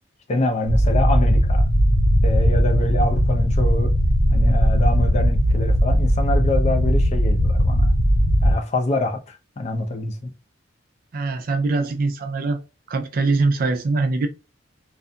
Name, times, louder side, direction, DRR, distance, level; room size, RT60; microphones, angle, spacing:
voice 1, 0.3-1.6 2.2-3.9 4.3-7.9 8.4-10.3, left 2 dB, 35° left, 0.5 m, -25 dB
sound 1, 0.6-8.5, equal, 75° left, 1.0 m, -18 dB
voice 2, 11.1-12.6 12.9-14.3, right 3 dB, 50° right, 0.4 m, -22 dB
2.6 x 2.5 x 2.2 m
head